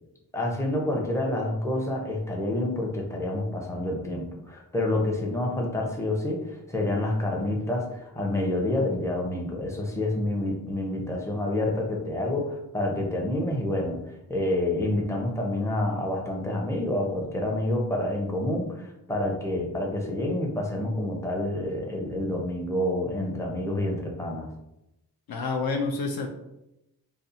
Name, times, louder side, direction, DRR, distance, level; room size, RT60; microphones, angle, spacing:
voice 1, 0.3-14.0 14.3-24.5, left 1 dB, 5° left, -1 dB, 0.6 m, -28 dB
voice 2, 25.3-26.3, left 3 dB, 60° left, 3 dB, 0.5 m, -28 dB
2.6 x 2.1 x 2.6 m, 0.87 s
cardioid pair, 45°, 41 cm